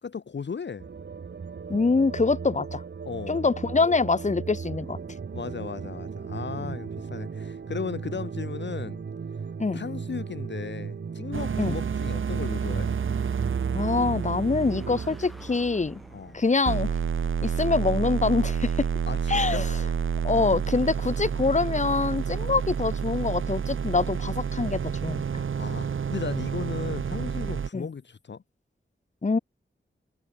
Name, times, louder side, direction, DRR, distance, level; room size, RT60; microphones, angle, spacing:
voice 1, 0.0-0.8 3.0-3.5 5.3-9.0 9.7-12.9 16.1-16.4 19.1-19.7 25.6-28.4, left 6 dB, 65° left, 1.0 m, -36 dB
sound 1, 0.8-15.2, right 5 dB, 65° right, 1.1 m, -36 dB
voice 2, 1.7-2.8 3.3-5.0 6.6-6.8 9.6-9.8 11.6-11.8 13.7-16.0 16.3-16.9 17.4-18.9 19.3-19.7 20.2-25.4 27.7-27.9 29.2-29.4, left 4 dB, 35° left, 1.2 m, -25 dB
sound 2, 11.3-16.3 16.7-27.7, right 7 dB, 85° right, 0.9 m, -29 dB
sound 3, 12.8-19.2, equal, ahead, 3.7 m, -52 dB
wide cardioid pair, 100°, 20 cm